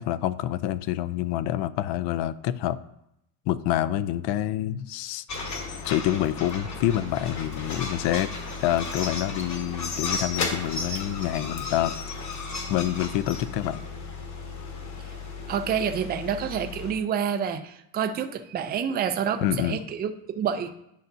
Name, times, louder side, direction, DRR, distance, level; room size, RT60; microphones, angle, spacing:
voice 1, 0.0-2.8 3.5-5.2 5.9-8.3 8.6-11.9 12.7-13.8 19.4-19.8, left 12 dB, 65° left, 16 dB, 0.5 m, -27 dB
sound 1, 5.3-16.9, left 4 dB, 35° left, 1.3 m, -34 dB
voice 2, 15.5-20.7, right 7 dB, 20° right, 8 dB, 0.3 m, -28 dB
10.5 x 5.5 x 2.7 m, 0.80 s
cardioid pair, 135°, 47 cm